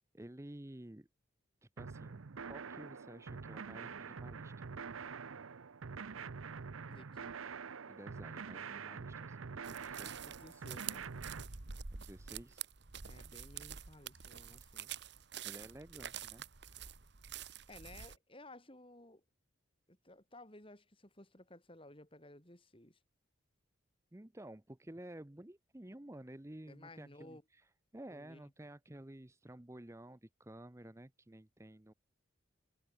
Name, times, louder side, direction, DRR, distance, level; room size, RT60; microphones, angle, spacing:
voice 1, 0.1-1.1 1.6-4.7 7.9-10.6 11.9-12.7 14.6-14.7 15.4-16.5 24.1-31.9, right 1 dB, 15° right, 0.6 m, -52 dB
sound 1, 1.8-11.4, right 5 dB, 85° right, 0.7 m, -46 dB
voice 2, 6.9-7.4 10.2-11.1 13.0-14.9 17.7-19.2 19.9-23.0 26.7-27.4 28.1-28.7, left 1 dB, 25° left, 3.5 m, -56 dB
sound 2, 9.6-18.2, right 8 dB, 55° right, 1.3 m, -47 dB
head